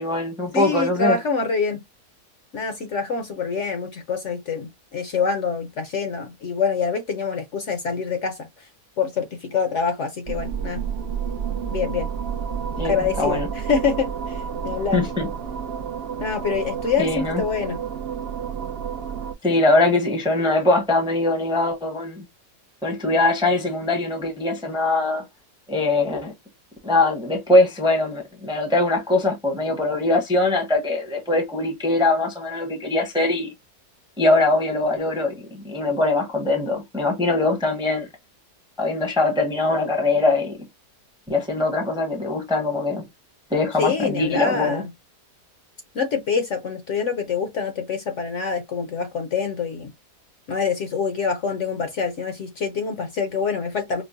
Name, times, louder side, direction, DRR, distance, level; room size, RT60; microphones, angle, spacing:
voice 1, 0.0-1.2 12.8-13.5 14.9-15.3 17.0-17.4 19.4-22.2 22.8-25.3 25.7-26.3 26.8-33.5 34.2-38.1 38.8-40.6 41.3-43.0 43.5-44.8, left 2 dB, 5° right, 0.6 m, -22 dB
voice 2, 0.5-1.8 2.5-8.7 9.0-10.8 11.7-12.1 12.8-15.0 16.2-17.8 43.8-44.9 45.9-49.9 50.5-54.0, left 5 dB, 60° left, 0.8 m, -25 dB
sound 1, 10.3-19.3, right 7 dB, 65° right, 0.6 m, -30 dB
5.1 x 2.0 x 2.5 m
omnidirectional pair, 1.7 m